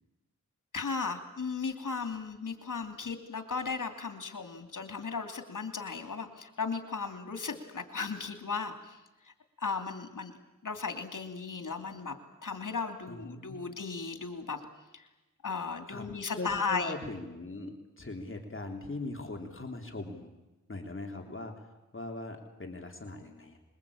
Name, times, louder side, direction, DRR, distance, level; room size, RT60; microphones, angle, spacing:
voice 1, 0.7-9.0 9.2-9.3 9.6-10.3 10.6-12.1 12.4-14.6 14.9-15.0 15.4-16.9, left 4 dB, 85° left, 7 dB, 2.9 m, -36 dB
voice 2, 13.1-13.6 15.9-16.0 16.4-20.4 20.7-21.5 21.9-23.6, left 2 dB, 40° left, 3 dB, 3.4 m, -40 dB
25.5 x 22.5 x 8.6 m, 1.0 s
wide cardioid pair, 65°, 31 cm